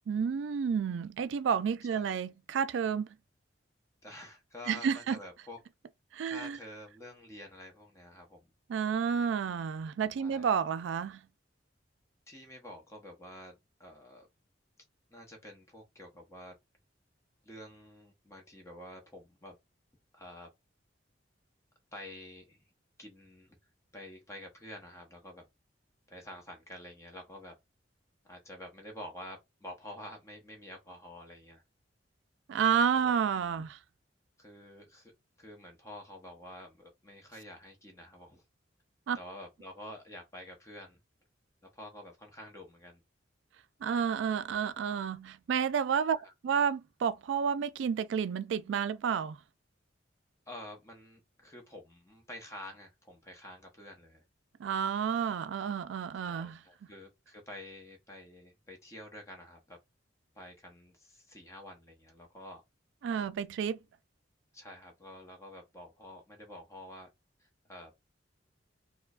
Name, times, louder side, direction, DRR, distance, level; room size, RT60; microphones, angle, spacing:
voice 1, 0.1-3.1 4.7-5.2 6.1-6.6 8.7-11.2 32.5-33.8 39.1-39.2 43.8-46.2 46.4-49.4 54.6-56.6 63.0-63.8, right 7 dB, 75° right, 0.3 m, -30 dB
voice 2, 4.0-5.6 6.2-8.5 10.2-10.5 12.3-14.3 15.1-16.5 17.4-19.6 20.1-20.5 21.9-22.7 23.0-23.6 23.9-25.4 26.1-27.5 28.2-31.6 32.7-33.1 33.6-33.7 34.4-35.1 35.4-38.4 39.1-41.0 41.7-43.0 46.1-46.3 50.5-54.2 56.2-59.8 60.3-62.6 63.2-63.3 64.5-67.1 67.4-67.9, left 1 dB, 15° left, 0.8 m, -49 dB
4.5 x 2.2 x 2.4 m
head